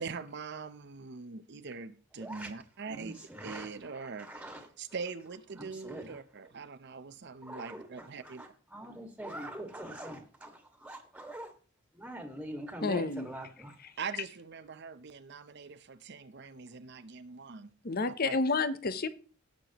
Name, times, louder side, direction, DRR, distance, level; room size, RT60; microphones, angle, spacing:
voice 1, 0.0-4.4 4.8-8.4 14.0-17.7 18.2-18.4, right 5 dB, 55° right, 0.7 m, -42 dB
voice 2, 2.2-2.5 2.9-4.7 5.6-6.2 7.4-11.5 11.9-13.7, right 1 dB, 5° right, 1.8 m, -44 dB
voice 3, 12.8-13.3 17.8-19.1, left 3 dB, 50° left, 0.8 m, -30 dB
18.0 x 6.7 x 3.0 m
head